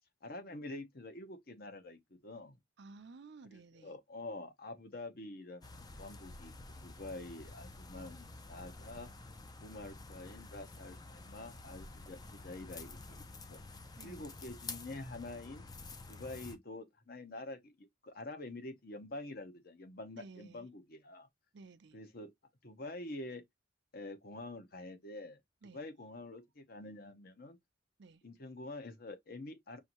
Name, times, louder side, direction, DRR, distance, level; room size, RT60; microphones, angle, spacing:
voice 1, 0.2-2.6 3.5-6.5 6.8-9.1 9.6-13.7 14.0-15.6 16.1-21.3 21.9-22.3 22.6-23.4 23.9-25.4 25.7-27.6 28.2-29.8, left 2 dB, 50° left, 0.9 m, -47 dB
voice 2, 2.8-3.9 7.9-8.2 14.0-14.3 20.2-20.7 21.5-22.0 25.6-25.9 28.0-28.2, right 4 dB, 60° right, 0.5 m, -54 dB
sound 1, 5.6-16.6, left 3 dB, 20° left, 0.5 m, -50 dB
5.6 x 2.7 x 2.9 m
head